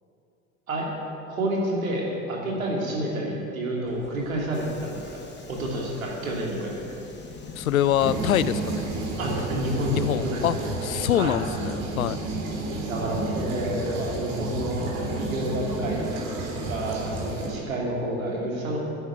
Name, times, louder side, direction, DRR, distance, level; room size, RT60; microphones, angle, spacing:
voice 1, 1.3-5.2 5.5-6.8 9.2-10.7 11.1-11.4 12.9-16.1 16.5-18.8, right 1 dB, 80° right, -2 dB, 3.0 m, -29 dB
Subway metro underground, 3.9-12.6, left 3 dB, 25° left, 2.3 m, -43 dB
voice 2, 7.6-8.8 9.9-10.5 10.8-12.2, left 11 dB, 85° left, 17 dB, 0.5 m, -24 dB
sound 1, 8.0-17.5, right 2 dB, 55° right, 3.3 m, -31 dB
10.5 x 10.0 x 8.2 m, 2.8 s
figure-of-eight pair, 75°, 41 cm